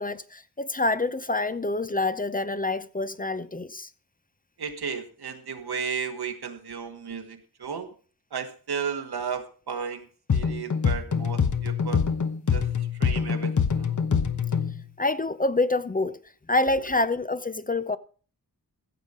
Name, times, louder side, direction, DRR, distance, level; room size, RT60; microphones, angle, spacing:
voice 1, 0.0-3.9 15.0-16.2 16.5-18.0, left 2 dB, 25° left, 0.7 m, -26 dB
voice 2, 4.6-7.9 8.3-12.0 12.5-12.7 13.0-14.0, right 6 dB, 85° right, 1.7 m, -34 dB
sound 1, 10.3-14.8, left 6 dB, 50° left, 1.2 m, -25 dB
15.5 x 7.2 x 5.1 m
wide cardioid pair, 85°, 37 cm